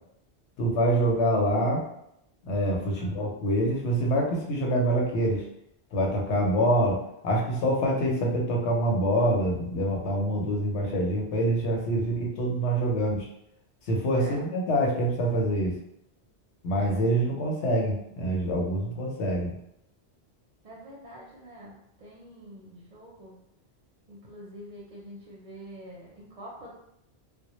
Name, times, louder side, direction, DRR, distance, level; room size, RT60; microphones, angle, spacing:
voice 1, 0.6-1.8 2.4-5.4 5.9-13.3 13.9-15.8 16.6-19.5, right 1 dB, 85° left, -1 dB, 0.9 m, -25 dB
voice 2, 14.1-14.5 20.6-23.4 24.1-26.7, equal, 50° right, -4 dB, 0.5 m, -46 dB
2.1 x 2.0 x 2.9 m, 0.76 s
omnidirectional pair, 1.1 m